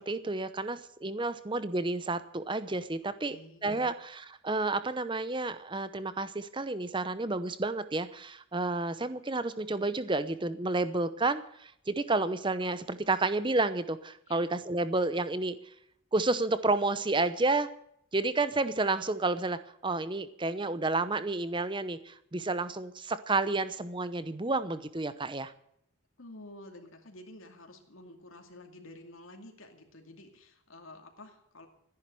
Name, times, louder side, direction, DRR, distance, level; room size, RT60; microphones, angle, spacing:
voice 1, 0.0-3.4 3.6-15.6 16.1-17.7 18.1-25.5, right 2 dB, 25° right, 13 dB, 0.8 m, -30 dB
voice 2, 3.3-4.0 14.3-14.4 26.2-31.7, left 1 dB, 75° left, 3 dB, 2.4 m, -50 dB
14.5 x 10.5 x 7.7 m, 0.71 s
head